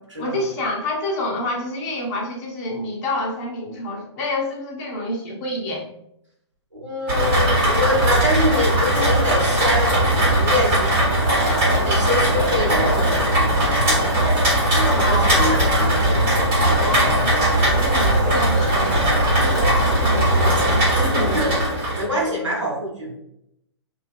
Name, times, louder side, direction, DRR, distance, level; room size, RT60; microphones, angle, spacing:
voice 1, 0.2-5.8 14.8-15.7 16.5-17.3 17.6-21.6, left 2 dB, 35° left, -2 dB, 0.7 m, -28 dB
voice 2, 6.7-14.3 14.7-16.2 16.6-17.2 17.5-17.7 19.5-19.7 21.2-23.2, left 1 dB, 90° right, -4 dB, 0.8 m, -26 dB
Rain, 7.1-22.0, right 1 dB, 30° right, 1.2 m, -19 dB
2.6 x 2.2 x 2.4 m, 0.78 s
figure-of-eight pair, 125°, 15 cm